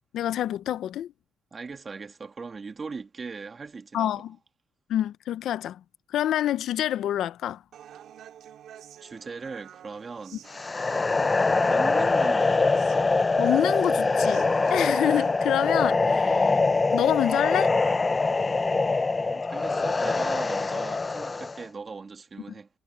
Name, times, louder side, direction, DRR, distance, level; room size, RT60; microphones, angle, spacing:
voice 1, 0.1-1.1 3.9-4.4 4.9-5.8 6.1-7.6 13.4-16.6 16.9-17.7, left 11 dB, 75° left, 0.7 m, -27 dB
voice 2, 1.5-4.2 9.0-10.5 11.7-12.8 19.0-22.7, right 4 dB, 35° right, 1.9 m, -39 dB
Human voice, 7.7-15.7, right 10 dB, 75° right, 2.2 m, -49 dB
sound 1, 10.5-21.6, left 3 dB, 25° left, 0.7 m, -24 dB
cardioid pair, 90°, 0 cm